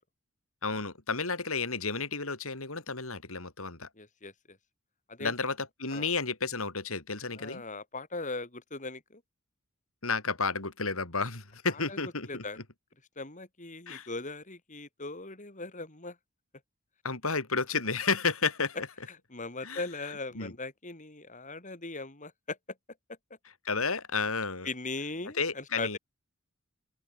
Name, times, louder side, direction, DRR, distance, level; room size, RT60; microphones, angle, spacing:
voice 1, 0.6-3.9 5.2-7.6 10.0-12.4 13.9-14.1 17.0-18.8 19.6-19.8 20.3-20.5 23.6-24.7 25.4-26.0, left 4 dB, 75° left, 4.5 m, -32 dB
voice 2, 4.0-4.6 5.1-5.3 5.9-6.1 7.4-9.2 11.7-12.6 13.2-16.2 19.1-22.6 24.6-26.0, left 3 dB, 35° left, 4.4 m, -39 dB
open air
head